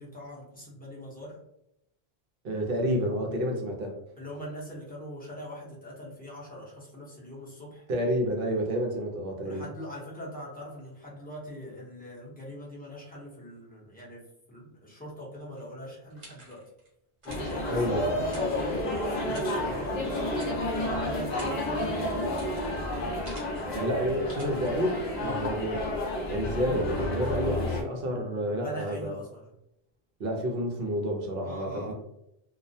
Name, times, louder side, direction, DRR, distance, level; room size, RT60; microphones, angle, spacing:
voice 1, 0.0-1.4 4.2-7.9 9.4-14.2 14.5-16.6 17.2-22.2 25.2-25.5 28.4-29.4 31.4-31.9, equal, 10° left, -6 dB, 0.7 m, -42 dB
voice 2, 2.4-4.0 7.9-9.6 17.7-18.1 23.7-25.7 26.3-29.1 30.2-31.9, equal, 65° right, 2 dB, 0.8 m, -29 dB
sound 1, 15.5-16.9 17.2-19.0 19.3-19.9 20.3-20.8 21.1-23.8 24.3-24.7, right 1 dB, 40° right, 1.0 m, -51 dB
sound 2, 17.3-27.8, left 1 dB, 50° left, 0.7 m, -31 dB
2.3 x 2.1 x 2.6 m, 0.83 s
omnidirectional pair, 1.1 m